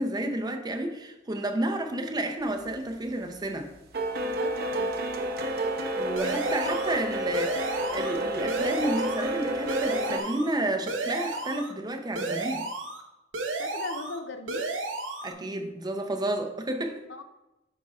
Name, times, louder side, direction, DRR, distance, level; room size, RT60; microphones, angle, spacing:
voice 1, 0.0-3.7 6.0-12.7 15.2-17.0, right 1 dB, 20° right, 0.6 m, -31 dB
sound 1, 2.6-3.0 3.3-10.2, right 1 dB, 55° right, 0.8 m, -30 dB
voice 2, 4.2-5.0 13.6-14.7 17.2-17.3, left 3 dB, 70° left, 0.6 m, -38 dB
sound 2, 6.2-7.0 7.3-8.2 8.5-9.3 9.7-10.5 10.9-11.7 12.2-13.0 13.3-14.2 14.5-15.3, right 2 dB, 90° right, 0.9 m, -33 dB
8.1 x 5.8 x 2.4 m
head